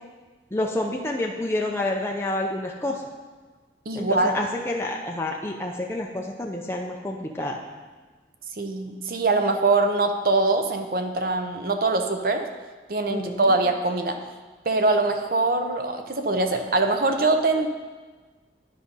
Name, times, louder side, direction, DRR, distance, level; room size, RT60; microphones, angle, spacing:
voice 1, 0.5-3.0 3.9-7.6 13.1-13.5, left 1 dB, 15° left, 0 dB, 0.5 m, -28 dB
voice 2, 3.9-4.3 8.6-12.4 12.9-14.2 14.7-17.7, right 3 dB, 50° right, 6 dB, 0.6 m, -23 dB
10.5 x 4.9 x 5.4 m, 1.4 s
head